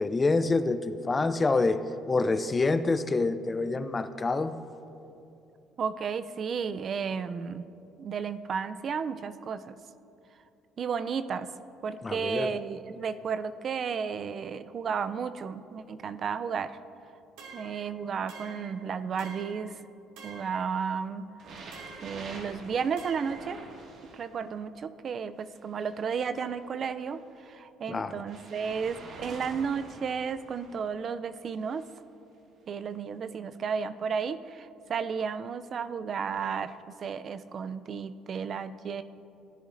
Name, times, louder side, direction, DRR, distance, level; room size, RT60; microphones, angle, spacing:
voice 1, 0.0-4.5 12.0-12.5 27.9-28.1, left 3 dB, 25° left, 12 dB, 0.5 m, -27 dB
voice 2, 5.8-7.6 8.0-9.8 10.8-11.5 11.8-16.8 17.5-19.7 20.2-21.6 22.0-23.6 24.1-31.9 32.7-36.7 37.0-39.0, right 6 dB, 50° right, 12 dB, 0.4 m, -33 dB
sound 1, 17.4-17.8 18.3-18.7 19.2-19.6 20.2-20.6 21.7-22.2 23.0-23.4, right 4 dB, 85° right, 1.7 m, -46 dB
sound 2, 21.4-24.5 25.4-27.2 28.3-30.8 31.6-31.9 32.7-32.8, right 2 dB, 65° right, 1.8 m, -47 dB
15.5 x 10.0 x 2.6 m, 2.7 s
supercardioid pair, 80°, 0 cm